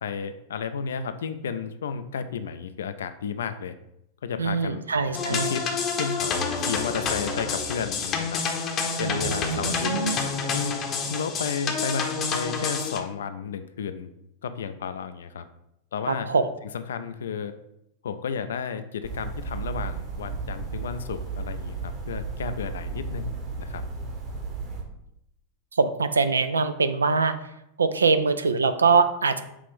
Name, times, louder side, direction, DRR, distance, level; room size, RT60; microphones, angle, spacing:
voice 1, 0.0-3.8 4.2-4.9 5.3-5.7 5.9-8.4 9.0-9.9 10.5-14.1 14.4-15.5 15.9-16.3 16.7-17.6 18.0-23.8, left 6 dB, 65° left, 11 dB, 0.3 m, -32 dB
voice 2, 4.4-5.6 9.0-10.3 16.1-16.5 25.7-27.3 27.8-29.4, right 4 dB, 75° right, 10 dB, 0.3 m, -23 dB
sound 1, 5.1-13.0, left 5 dB, 30° left, 0.7 m, -28 dB
sound 2, 19.0-24.8, right 4 dB, 35° right, 1.2 m, -34 dB
6.0 x 2.5 x 3.4 m, 0.81 s
figure-of-eight pair, 90°, 0 cm